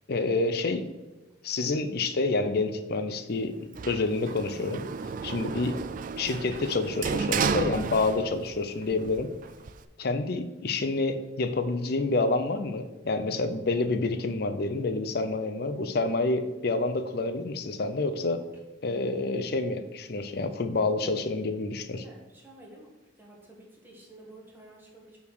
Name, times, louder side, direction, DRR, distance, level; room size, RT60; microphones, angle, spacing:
voice 1, 0.1-0.9 1.4-4.9 5.2-5.8 6.2-9.3 10.0-18.4 18.8-22.0, left 3 dB, 60° left, 9 dB, 0.6 m, -28 dB
Sliding door, 3.8-8.6 8.9-9.8, right 5 dB, 45° right, 0.3 m, -32 dB
voice 2, 22.0-22.9 23.2-25.2, right 1 dB, 10° right, -2 dB, 1.5 m, -51 dB
5.7 x 4.4 x 6.2 m, 1.1 s
head